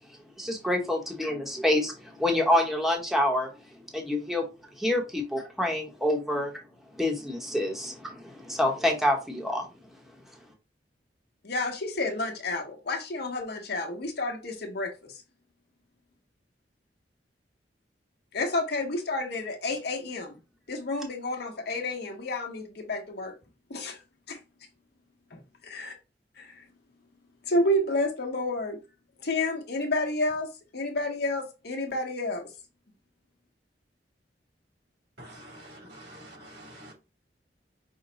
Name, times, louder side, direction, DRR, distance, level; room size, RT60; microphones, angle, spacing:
voice 1, 0.4-1.9 2.2-3.5 3.9-4.5 4.8-6.6 7.0-9.7, left 1 dB, ahead, 1.0 m, -27 dB
voice 2, 11.4-15.1 18.3-20.4 20.7-23.3 23.7-24.0 24.3-24.4 25.3-25.9 26.4-26.6 27.5-28.8 29.2-30.5 30.7-32.5, left 2 dB, 65° left, 1.1 m, -30 dB
voice 3, 35.2-36.9, right 1 dB, 80° right, 2.6 m, -47 dB
5.5 x 2.2 x 3.9 m
head